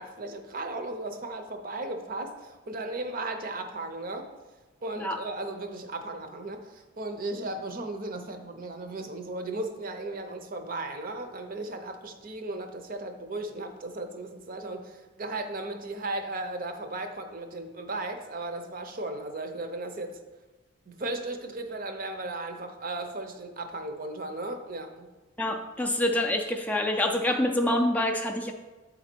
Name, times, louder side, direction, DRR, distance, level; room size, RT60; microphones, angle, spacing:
voice 1, 0.0-4.3 4.8-20.2 20.9-25.1, right 2 dB, 45° right, 6 dB, 0.7 m, -36 dB
voice 2, 25.4-28.5, left 1 dB, 10° left, 2 dB, 0.3 m, -26 dB
7.9 x 4.0 x 4.4 m, 1.3 s
head